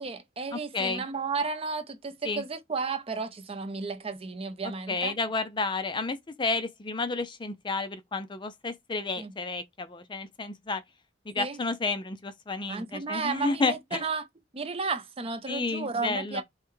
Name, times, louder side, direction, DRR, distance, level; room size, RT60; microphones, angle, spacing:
voice 1, 0.0-5.1 9.2-9.3 11.4-11.6 12.7-14.3 14.5-16.4, right 4 dB, 30° right, 0.6 m, -33 dB
voice 2, 0.5-1.0 2.2-2.4 4.9-10.8 11.3-14.0 15.5-16.4, left 3 dB, 25° left, 0.5 m, -31 dB
5.6 x 2.2 x 3.1 m
head